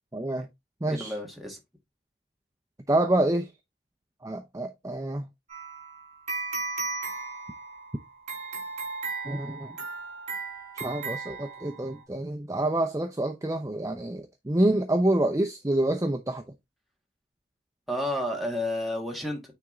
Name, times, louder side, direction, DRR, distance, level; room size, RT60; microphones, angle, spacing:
voice 1, 0.1-0.5 0.8-1.1 2.9-3.5 4.2-5.3 9.2-9.7 10.7-16.4, right 1 dB, 15° right, 0.6 m, -27 dB
voice 2, 0.8-1.6 17.9-19.4, left 1 dB, ahead, 1.8 m, -31 dB
sound 1, 5.5-12.0, right 3 dB, 40° right, 4.2 m, -36 dB
9.3 x 3.6 x 3.8 m
head